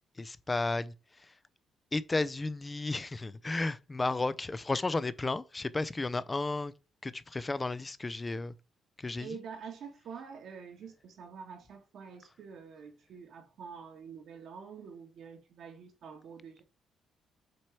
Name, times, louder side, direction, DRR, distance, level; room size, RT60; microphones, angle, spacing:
voice 1, 0.2-1.3 1.9-6.7 7.0-8.5 9.0-9.3, left 3 dB, 20° left, 0.5 m, -33 dB
voice 2, 9.2-16.6, right 6 dB, 70° right, 1.5 m, -46 dB
7.5 x 3.1 x 4.6 m
cardioid pair, 90°, 0 cm